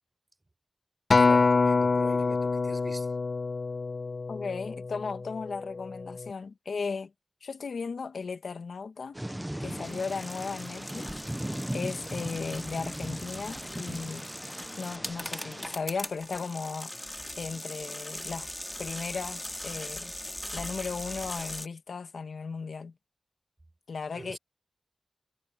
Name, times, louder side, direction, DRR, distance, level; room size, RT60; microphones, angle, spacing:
Acoustic guitar, 1.1-5.5 6.2-6.3, left 4 dB, 65° left, 1.2 m, -25 dB
voice 1, 1.2-3.1 24.1-24.4, right 2 dB, 35° right, 5.4 m, -43 dB
voice 2, 4.3-7.1 7.4-9.2 9.6-11.2 11.7-14.2 14.8-16.9 17.4-18.5 18.8-20.1 20.5-22.9 23.9-24.4, left 5 dB, 85° left, 1.6 m, -36 dB
Thunder / Rain, 9.1-15.8, right 1 dB, 15° right, 1.2 m, -38 dB
sound 1, 9.7-21.7, left 1 dB, 15° left, 2.9 m, -40 dB
cardioid pair, 40°, 0 cm